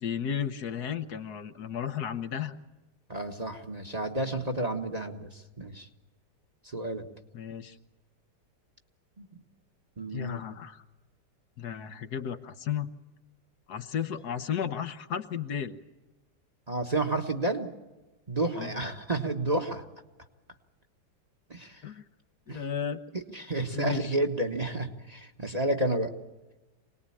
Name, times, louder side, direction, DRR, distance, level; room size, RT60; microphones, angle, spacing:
voice 1, 0.0-2.6 7.3-7.8 10.1-10.8 11.6-12.9 13.7-15.8 18.6-18.7 21.8-22.0 22.5-23.0 23.7-24.1, left 8 dB, 65° left, 9 dB, 1.5 m, -33 dB
voice 2, 3.1-5.9 6.6-7.1 9.2-9.4 10.0-10.4 16.7-17.7 18.3-19.8 21.5-21.8 22.5-22.6 23.1-26.1, right 2 dB, 25° right, 5 dB, 1.3 m, -31 dB
26.0 x 19.5 x 8.6 m, 1.1 s
omnidirectional pair, 1.9 m